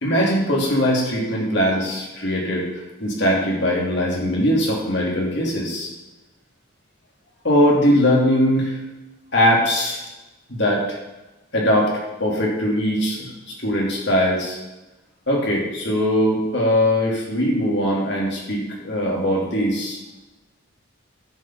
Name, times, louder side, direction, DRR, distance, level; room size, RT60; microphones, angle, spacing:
voice 1, 0.0-2.7 3.0-5.9 7.4-8.8 9.3-10.0 10.5-10.8 11.5-14.6 15.3-20.0, equal, 55° left, -3 dB, 2.6 m, -20 dB
11.0 x 5.3 x 5.9 m, 1.0 s
head